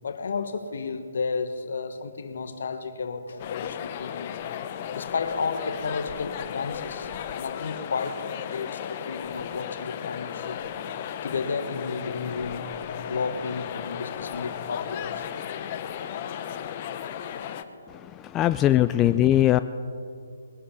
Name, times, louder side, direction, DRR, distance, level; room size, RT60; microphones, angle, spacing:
voice 1, 0.0-4.3 4.9-10.6 11.2-12.8 13.1-15.3, left 4 dB, 60° left, 1.3 m, -32 dB
sound 1, 3.4-17.6, left 9 dB, 35° left, 0.9 m, -35 dB
voice 2, 17.9-19.6, left 13 dB, 20° left, 0.3 m, -21 dB
21.5 x 11.0 x 5.6 m
figure-of-eight pair, 135°, 0 cm